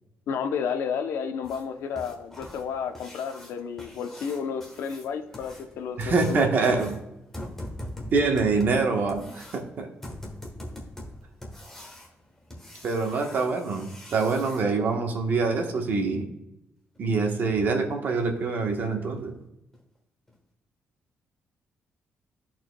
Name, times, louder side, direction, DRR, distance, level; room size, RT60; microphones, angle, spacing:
voice 1, 0.3-6.4, left 6 dB, 85° left, 7 dB, 0.7 m, -31 dB
sound 1, 1.4-14.6 16.9-17.0 17.5-17.6 18.0-18.1 18.6-18.7 19.2-19.3 19.7-19.8 20.3-20.4, left 1 dB, 10° left, 1.2 m, -43 dB
voice 2, 6.0-7.0 8.1-9.9 12.8-16.3 17.0-19.3, right 4 dB, 50° right, 3 dB, 1.1 m, -25 dB
13.0 x 4.4 x 2.2 m, 0.88 s
cardioid pair, 140°, 4 cm